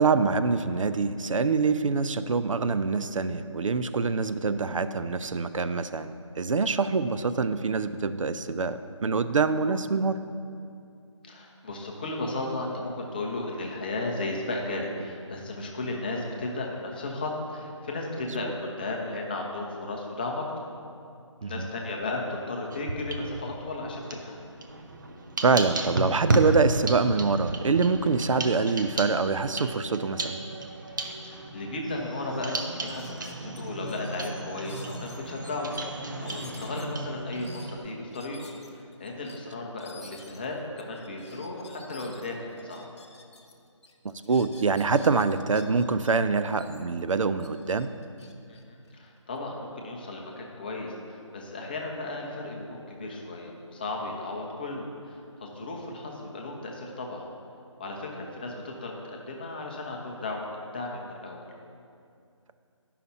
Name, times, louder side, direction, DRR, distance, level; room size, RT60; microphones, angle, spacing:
voice 1, 0.0-10.2 21.4-21.7 25.4-30.4 44.0-47.9, right 4 dB, 85° right, 11 dB, 0.4 m, -25 dB
voice 2, 11.2-20.4 21.5-24.4 31.2-42.8 48.5-57.2 57.8-61.5, left 2 dB, 20° left, 0 dB, 0.6 m, -35 dB
sound 1, 22.7-23.6 24.0-37.8, right 2 dB, 40° right, 0.6 m, -33 dB
sound 2, 31.9-32.0 32.3-32.5 32.8-35.8 36.2-43.5 43.8-46.1 46.5-49.4, left 3 dB, 60° left, 0.8 m, -51 dB
9.3 x 5.7 x 4.2 m, 2.5 s
figure-of-eight pair, 160°, 16 cm